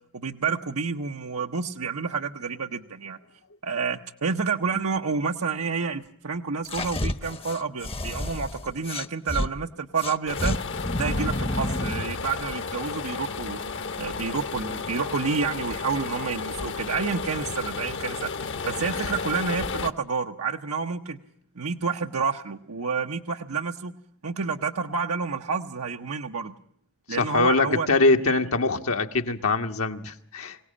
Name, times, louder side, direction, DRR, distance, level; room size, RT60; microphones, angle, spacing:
voice 1, 0.1-3.2 3.6-10.6 11.0-13.6 14.0-18.3 18.6-21.2 21.6-23.9 24.2-26.5 27.1-27.9, right 5 dB, 85° right, 3 dB, 1.0 m, -29 dB
sound 1, 6.6-9.5 10.0-12.0, left 1 dB, 25° left, 0.9 m, -29 dB
sound 2, 10.3-19.9, left 4 dB, 60° left, 1.2 m, -33 dB
voice 2, 27.2-30.6, left 3 dB, 80° left, 5 dB, 1.6 m, -23 dB
24.5 x 17.5 x 8.6 m, 0.66 s
head